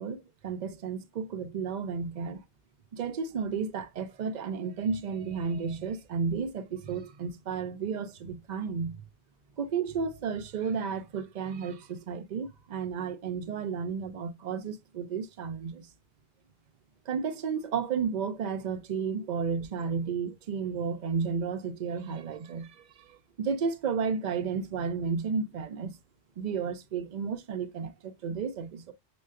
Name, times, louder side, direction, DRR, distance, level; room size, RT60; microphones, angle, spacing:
voice 1, 0.0-2.4 2.9-9.1 9.6-15.9 17.1-25.9 26.4-28.9, right 6 dB, 55° right, 0.6 m, -32 dB
6.4 x 2.2 x 2.4 m
omnidirectional pair, 1.1 m